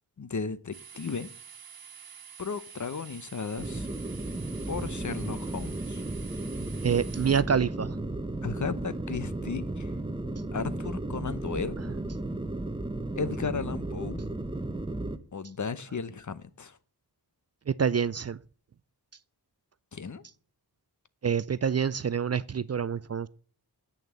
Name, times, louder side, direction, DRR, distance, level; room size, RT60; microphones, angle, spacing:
voice 1, 0.2-1.3 2.4-3.9 4.7-6.0 8.4-9.9 10.5-11.8 13.2-14.2 15.3-16.8 19.9-20.2, left 5 dB, 50° left, 0.8 m, -35 dB
sound 1, 0.7-7.4, right 7 dB, 65° right, 1.4 m, -48 dB
sound 2, 3.6-15.2, right 2 dB, 15° right, 0.8 m, -34 dB
voice 2, 6.8-8.0 17.7-18.4 21.2-23.3, right 7 dB, 40° right, 0.4 m, -27 dB
8.8 x 6.6 x 7.4 m
wide cardioid pair, 110°, 39 cm